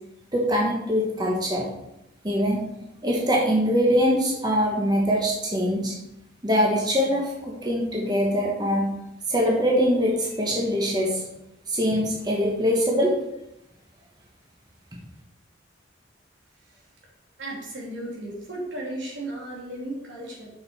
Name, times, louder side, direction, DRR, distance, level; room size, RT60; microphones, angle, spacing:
voice 1, 0.3-1.6 2.2-2.6 3.0-5.9 6.4-8.9 9.3-11.2 11.7-13.1, equal, 20° right, -2 dB, 1.3 m, -23 dB
voice 2, 17.4-20.5, right 1 dB, 80° right, -3 dB, 2.7 m, -35 dB
6.5 x 6.4 x 4.3 m, 0.85 s
head